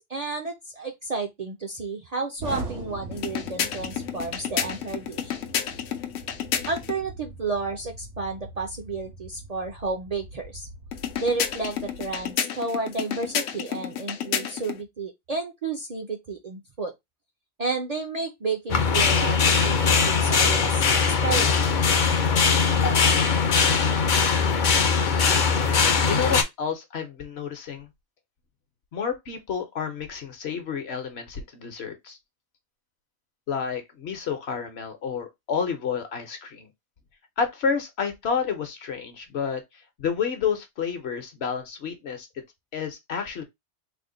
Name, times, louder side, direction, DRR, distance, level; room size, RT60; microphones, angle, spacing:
voice 1, 0.1-5.4 6.7-10.7 11.2-16.9 17.6-20.9 21.2-21.6, right 3 dB, 50° right, 0.5 m, -31 dB
Explosion, 2.4-12.3, right 3 dB, 80° right, 1.5 m, -41 dB
sound 1, 3.1-7.0 10.9-14.8, left 9 dB, 90° left, 0.9 m, -31 dB
sound 2, 18.7-26.4, left 5 dB, 50° left, 0.7 m, -21 dB
voice 2, 26.0-27.9 28.9-32.2 33.5-36.7 37.4-39.6 40.0-42.3 42.7-43.4, left 6 dB, 65° left, 1.0 m, -30 dB
3.4 x 2.1 x 3.7 m
omnidirectional pair, 1.2 m